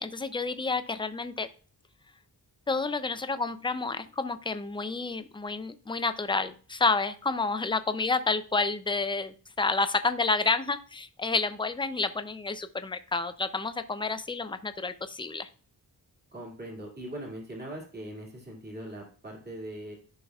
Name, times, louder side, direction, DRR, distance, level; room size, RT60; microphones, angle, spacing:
voice 1, 0.0-1.5 2.7-15.5, left 3 dB, 15° left, 11 dB, 0.4 m, -29 dB
voice 2, 16.3-19.9, right 1 dB, 25° right, -2 dB, 2.2 m, -40 dB
13.5 x 5.6 x 2.3 m, 0.39 s
wide cardioid pair, 155°, 38 cm